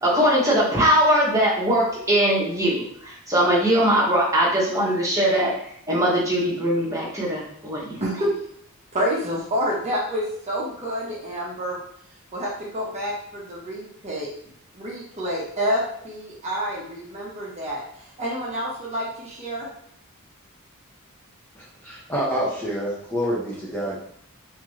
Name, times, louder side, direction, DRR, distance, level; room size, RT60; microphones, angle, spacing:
voice 1, 0.0-5.5 5.9-8.0, equal, 15° right, -6 dB, 1.2 m, -21 dB
voice 2, 8.0-8.3 8.9-11.8 12.3-14.3 14.7-17.8 18.2-19.7, equal, 30° right, -5 dB, 0.9 m, -28 dB
voice 3, 21.8-24.0, equal, 10° left, -6 dB, 0.7 m, -27 dB
3.6 x 3.0 x 3.1 m, 0.67 s
head